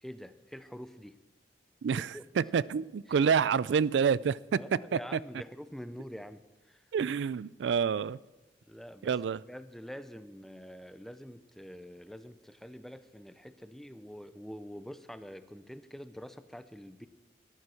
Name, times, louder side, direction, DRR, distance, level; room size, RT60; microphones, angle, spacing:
voice 1, 0.0-1.2 1.9-2.2 2.6-2.7 3.1-3.2 4.6-6.8 8.7-17.1, equal, ahead, 12 dB, 0.6 m, -46 dB
voice 2, 1.8-4.6 4.9-5.2 6.9-8.2 9.0-9.4, right 6 dB, 85° right, 20 dB, 0.4 m, -28 dB
13.5 x 11.0 x 6.3 m, 1.2 s
head